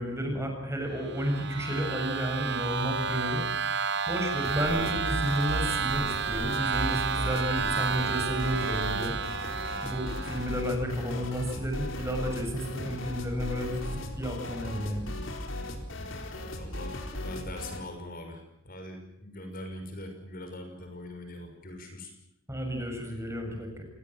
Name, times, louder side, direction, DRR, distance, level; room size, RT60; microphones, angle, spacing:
voice 1, 0.0-3.5 4.1-9.2 9.8-15.1 22.5-23.8, equal, 15° right, 3 dB, 6.9 m, -32 dB
sound 1, 1.0-10.6, right 6 dB, 60° right, 1.1 m, -31 dB
sound 2, 4.4-17.9, left 1 dB, 70° left, 4.5 m, -37 dB
voice 2, 16.6-22.1, left 1 dB, 45° left, 5 dB, 5.9 m, -42 dB
28.5 x 20.0 x 7.5 m, 0.80 s
head